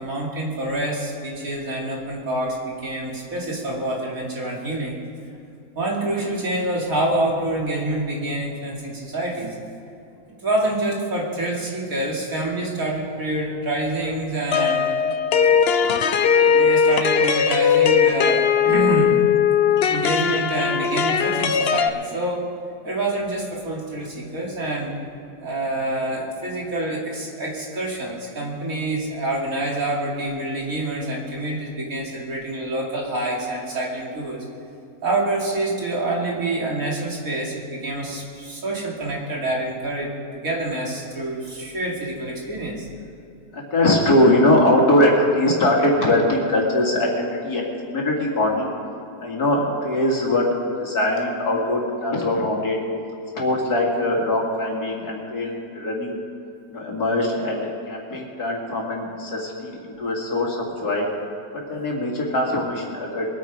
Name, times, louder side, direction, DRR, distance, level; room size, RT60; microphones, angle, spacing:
voice 1, 0.0-5.0 5.8-9.6 10.4-14.8 16.4-19.1 19.9-22.5 22.8-24.9 25.4-34.4 35.0-42.9, right 2 dB, 65° right, -3 dB, 3.1 m, -27 dB
sound 1, 14.5-21.9, left 7 dB, 55° left, 0.7 m, -19 dB
voice 2, 43.5-48.7 49.2-50.5 50.8-52.8 53.3-56.2 56.7-61.0 61.5-63.3, left 1 dB, 90° left, -2 dB, 3.0 m, -21 dB
22.5 x 9.1 x 4.9 m, 2.6 s
omnidirectional pair, 1.6 m